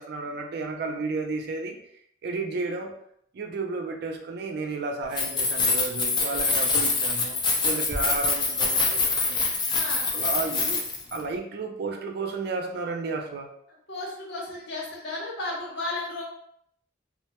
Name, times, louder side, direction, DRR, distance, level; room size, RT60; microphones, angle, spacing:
voice 1, 0.0-1.8 2.2-2.9 3.3-7.4 7.6-9.5 10.1-13.5, right 3 dB, 60° right, 3 dB, 0.4 m, -32 dB
Keys jangling, 5.0-11.2, left 4 dB, 25° left, 0.3 m, -25 dB
voice 2, 9.7-10.1 13.9-16.2, left 2 dB, 65° left, -3 dB, 0.8 m, -34 dB
2.1 x 2.1 x 2.8 m, 0.70 s
head